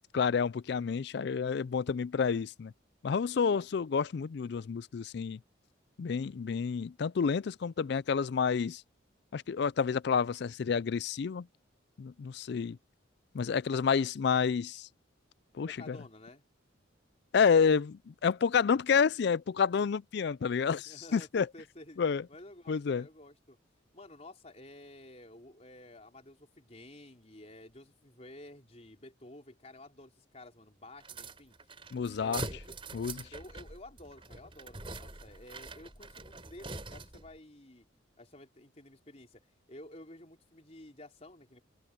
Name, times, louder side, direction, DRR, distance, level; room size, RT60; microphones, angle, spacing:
voice 1, 0.1-2.7 3.0-5.4 6.0-8.8 9.3-11.5 12.0-12.8 13.3-14.9 15.6-16.0 17.3-21.5 22.0-22.2 22.7-23.0 31.9-32.4 32.9-33.3, left 6 dB, 55° left, 0.4 m, -29 dB
voice 2, 15.7-16.4 20.9-22.0 22.3-23.6 23.9-31.5 32.2-32.8 33.3-37.9 38.2-41.6, left 1 dB, 35° left, 4.2 m, -52 dB
sound 1, 31.0-37.3, right 3 dB, 25° right, 4.4 m, -44 dB
head